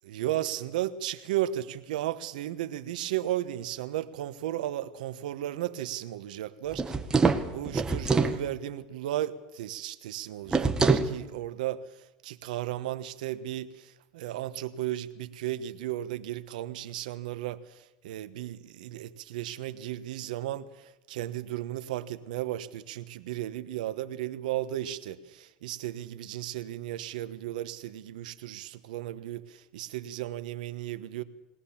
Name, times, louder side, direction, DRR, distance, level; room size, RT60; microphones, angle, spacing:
voice 1, 0.0-6.8 7.5-11.8 12.2-31.2, right 13 dB, 85° right, 1.2 m, -35 dB
sound 1, 6.7-8.4 10.5-11.1, right 4 dB, 15° right, 1.5 m, -24 dB
21.5 x 18.5 x 7.3 m
supercardioid pair, 110°, 4 cm